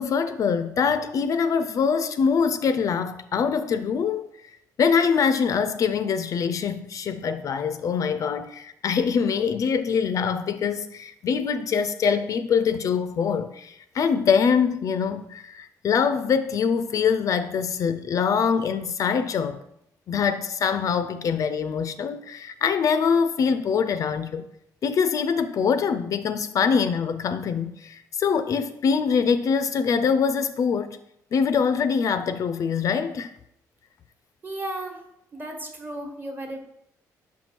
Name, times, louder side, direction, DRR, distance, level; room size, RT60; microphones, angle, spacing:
voice 1, 0.0-4.3 4.8-19.6 20.1-24.4 24.8-31.0 31.3-33.3, left 6 dB, 55° left, 0.4 m, -24 dB
voice 2, 34.4-35.0 35.3-36.6, right 1 dB, 25° right, 1.2 m, -34 dB
5.5 x 4.4 x 4.4 m
cardioid pair, 105°, 7 cm